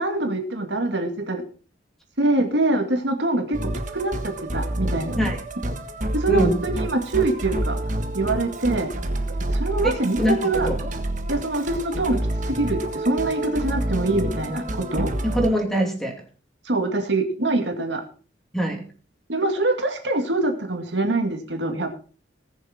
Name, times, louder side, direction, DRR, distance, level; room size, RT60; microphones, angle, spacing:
voice 1, 0.0-1.4 2.2-5.3 6.1-7.8 8.1-8.9 9.5-10.7 11.3-15.1 16.7-18.0 19.3-21.9, right 2 dB, 75° right, 4 dB, 2.2 m, -24 dB
Musical instrument, 3.5-15.5, right 1 dB, 45° right, 1.5 m, -28 dB
voice 2, 9.8-10.4 10.6-10.8 15.2-16.2 18.5-18.9, equal, ahead, 1 dB, 2.7 m, -23 dB
19.5 x 7.0 x 4.4 m, 0.38 s
head